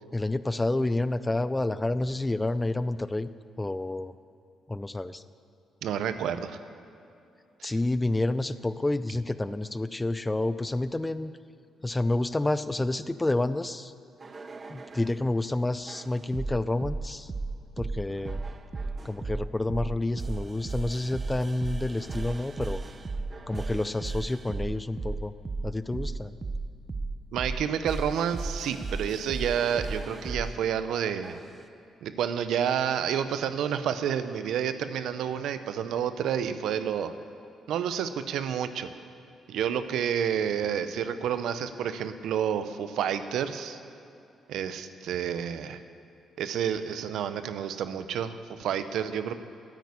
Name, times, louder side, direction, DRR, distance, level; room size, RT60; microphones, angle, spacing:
voice 1, 0.1-3.3 3.6-4.1 4.7-5.2 7.6-11.3 11.8-13.9 14.7-17.3 17.8-18.4 19.0-22.8 23.5-25.3 25.6-26.3, left 2 dB, 15° left, 14 dB, 0.4 m, -29 dB
voice 2, 5.8-6.6 7.6-7.7 27.3-31.4 32.0-37.1 37.7-38.9 39.5-43.8 44.5-45.8 46.4-49.3, right 8 dB, 80° right, 11 dB, 0.7 m, -29 dB
sound 1, 14.2-15.2 15.9-30.5 31.2-31.6, right 3 dB, 30° right, 0.7 m, -35 dB
9.5 x 9.1 x 8.4 m, 2.7 s
cardioid pair, 90°, 0 cm